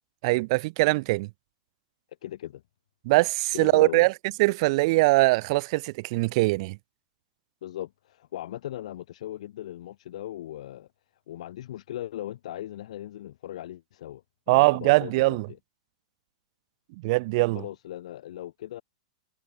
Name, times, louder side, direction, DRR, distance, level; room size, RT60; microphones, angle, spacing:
voice 1, 0.2-1.3 3.1-4.1 4.4-6.8 14.5-15.5 17.0-17.6, right 23 dB, 50° right, 0.4 m, -22 dB
voice 2, 2.2-2.6 3.5-4.1 7.6-10.9 11.3-14.2 14.5-15.6 17.5-18.8, left 13 dB, 70° left, 0.7 m, -38 dB
hypercardioid pair, 120°, 4 cm